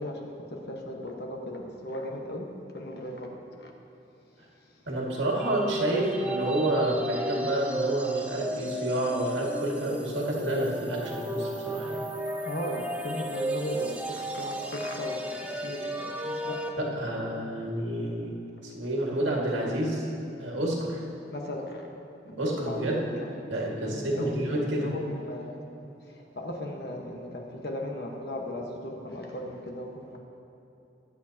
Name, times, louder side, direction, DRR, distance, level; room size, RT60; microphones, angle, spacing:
voice 1, 0.0-2.5 2.7-3.7 4.6-4.8 11.9-12.1 12.4-15.2 15.5-16.6 16.9-17.4 18.0-18.1 21.3-21.9 22.2-23.6 23.8-25.5 26.0-30.2, left 1 dB, 60° left, 0 dB, 1.4 m, -37 dB
voice 2, 4.9-12.0 16.8-20.1 20.4-21.0 22.4-23.0 23.5-24.9, right 1 dB, 80° right, -3 dB, 2.1 m, -29 dB
sound 1, 5.4-16.7, right 1 dB, 10° right, 0.6 m, -33 dB
22.0 x 7.6 x 2.9 m, 2.9 s
head